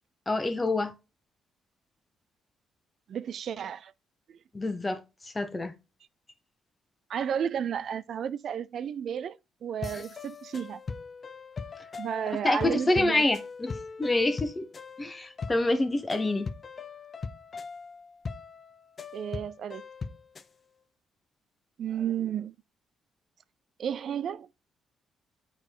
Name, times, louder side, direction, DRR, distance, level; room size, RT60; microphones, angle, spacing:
voice 1, 0.3-0.9 4.5-5.7 12.4-13.7 14.0-14.7 15.0-16.5, left 2 dB, 20° left, 1.1 m, -27 dB
voice 2, 3.1-3.9 4.3-4.4 7.1-10.8 12.0-13.3 19.1-19.8 21.8-22.5 23.8-24.5, right 8 dB, 60° right, 0.3 m, -32 dB
sound 1, 9.8-20.5, left 5 dB, 35° left, 0.6 m, -40 dB
8.7 x 4.0 x 3.0 m
cardioid pair, 90°, 0 cm